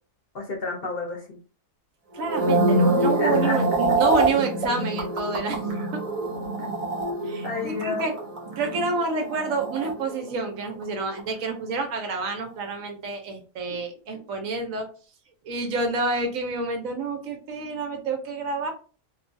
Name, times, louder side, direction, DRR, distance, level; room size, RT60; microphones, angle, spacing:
voice 1, 0.3-1.4 3.2-3.6 3.9-4.0 6.6-6.7 7.4-8.0, left 3 dB, 55° left, 0 dB, 0.8 m, -31 dB
sound 1, 2.1-10.6 10.8-11.2, right 2 dB, 45° right, 0.4 m, -25 dB
voice 2, 2.1-5.9 7.2-8.1 8.6-14.9 15.4-18.7, right 3 dB, 75° right, 4 dB, 1.1 m, -28 dB
2.7 x 2.3 x 2.5 m, 0.37 s
omnidirectional pair, 1.4 m